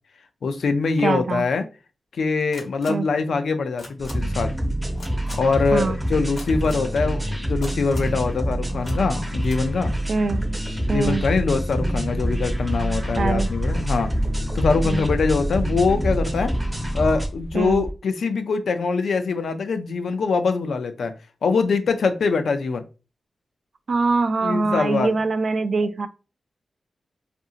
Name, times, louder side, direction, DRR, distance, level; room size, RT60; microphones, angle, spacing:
voice 1, 0.4-1.7 2.2-4.5 5.3-9.9 10.9-14.1 14.5-16.5 16.9-21.1 21.4-22.8 24.4-25.2, left 4 dB, 85° left, 0.4 m, -23 dB
voice 2, 1.0-1.4 2.9-3.1 5.7-6.0 10.1-10.4 10.9-11.2 13.2-13.5 14.8-15.0 17.5-17.8 23.9-26.1, right 3 dB, 60° right, 0.3 m, -23 dB
sound 1, 2.5-2.9 3.8-4.1 5.0-5.3 6.4-6.8 7.6-8.1 8.8-8.9 9.4-9.6, left 2 dB, 70° left, 1.0 m, -40 dB
sound 2, 4.0-17.3, right 1 dB, 15° right, 0.7 m, -26 dB
sound 3, 10.8-17.9, equal, 25° left, 0.5 m, -31 dB
2.7 x 2.5 x 2.4 m
wide cardioid pair, 110°, 0 cm